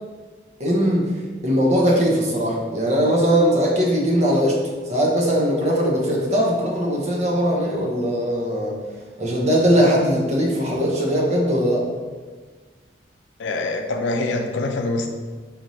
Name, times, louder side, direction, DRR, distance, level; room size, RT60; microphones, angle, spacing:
voice 1, 0.6-1.0 1.4-4.6 4.9-8.7 9.2-11.8, equal, 40° right, -3 dB, 0.7 m, -20 dB
voice 2, 13.4-15.1, left 2 dB, 85° left, 4 dB, 0.4 m, -24 dB
4.2 x 3.1 x 2.6 m, 1.4 s
head